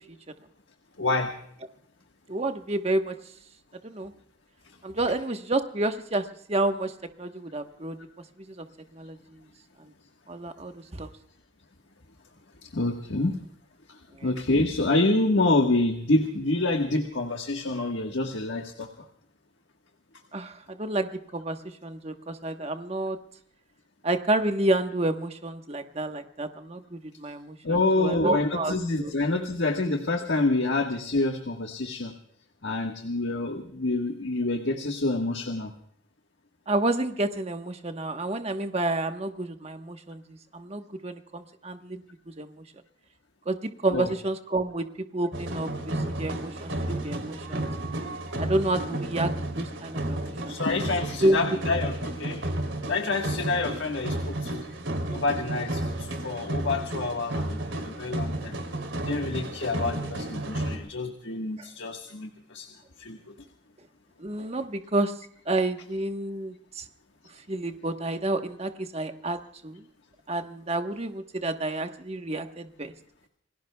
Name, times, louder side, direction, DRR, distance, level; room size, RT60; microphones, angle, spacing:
voice 1, 1.0-1.3 12.6-13.4 13.9-18.9 27.6-32.1 32.6-35.7 43.9-44.1 50.5-52.4 52.9-54.7 55.1-58.6 59.0-62.7 63.0-63.2, left 2 dB, 75° left, 3 dB, 1.4 m, -27 dB
voice 2, 2.3-3.1 3.8-4.1 4.8-6.2 6.5-6.9 7.2-8.0 8.6-8.7 8.9-9.4 10.3-11.1 14.2-14.3 20.3-21.6 21.8-23.2 24.0-29.1 36.7-42.0 42.4-42.6 43.5-44.9 45.1-47.7 48.4-50.5 51.2-51.4 64.2-65.1 65.5-66.8 67.5-69.8 70.3-72.9, right 2 dB, 35° right, 7 dB, 1.2 m, -29 dB
sound 1, 45.3-60.8, right 1 dB, 90° right, 3.2 m, -32 dB
28.0 x 20.0 x 2.3 m, 0.66 s
head